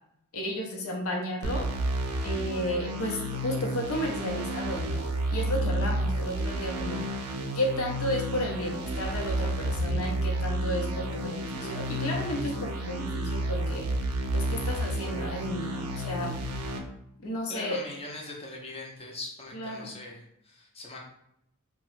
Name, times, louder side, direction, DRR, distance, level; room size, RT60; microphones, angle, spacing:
voice 1, 0.3-1.7 2.2-5.1 5.3-7.0 7.5-13.9 14.3-16.4 17.2-17.8 19.5-19.9, equal, 70° left, 1 dB, 0.7 m, -33 dB
sound 1, 1.4-16.8, right 1 dB, 90° right, 0.5 m, -31 dB
voice 2, 17.5-21.0, left 2 dB, 25° left, -1 dB, 0.6 m, -41 dB
2.9 x 2.2 x 3.1 m, 0.75 s
head